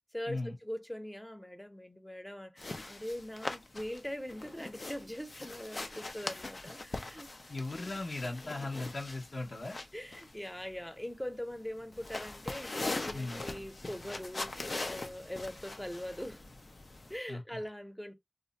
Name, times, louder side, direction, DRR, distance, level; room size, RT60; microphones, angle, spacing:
voice 1, 0.1-7.3 9.9-16.4 17.1-18.2, left 1 dB, 10° left, 0.7 m, -42 dB
sound 1, 2.6-17.2, left 2 dB, 70° left, 0.5 m, -42 dB
voice 2, 7.5-9.8 13.1-13.4 17.3-17.4, left 2 dB, 85° left, 0.8 m, -37 dB
2.5 x 2.1 x 3.8 m
wide cardioid pair, 45°, 0 cm